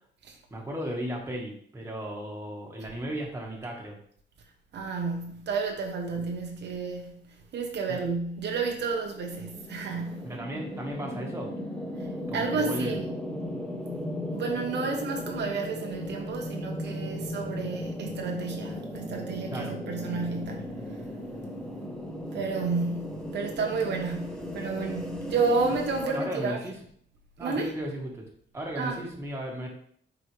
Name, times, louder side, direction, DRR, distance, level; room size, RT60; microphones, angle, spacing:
voice 1, 0.5-4.0 7.9-8.0 10.2-11.5 12.3-13.0 19.5-19.8 26.0-26.7 27.4-28.2 28.5-29.7, right 1 dB, 15° right, 1.5 m, -35 dB
voice 2, 4.7-10.3 12.0-13.1 13.8-13.9 14.3-20.9 22.3-26.6 27.4-27.7 28.8-29.0, right 4 dB, 65° right, 1.0 m, -31 dB
sound 1, 8.3-26.1, left 1 dB, 5° left, 0.9 m, -37 dB
7.8 x 4.8 x 3.2 m
wide cardioid pair, 155°, 19 cm